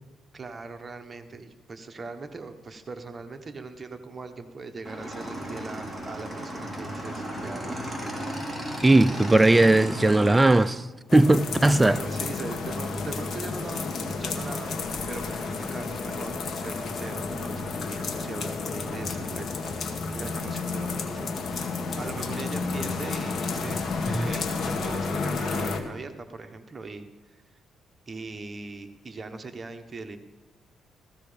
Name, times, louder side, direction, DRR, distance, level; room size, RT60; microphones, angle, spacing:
voice 1, 0.3-8.1 11.8-27.4 28.1-30.2, right 3 dB, 30° right, 1.2 m, -40 dB
Motorcycle / Engine, 4.8-10.7, equal, 5° left, 3.8 m, -35 dB
voice 2, 8.8-10.9 11.1-12.0 24.1-24.3, right 2 dB, 15° right, 0.4 m, -18 dB
sound 1, 11.1-25.8, left 4 dB, 55° left, 1.9 m, -31 dB
15.5 x 15.0 x 5.1 m
cardioid pair, 90°, 0 cm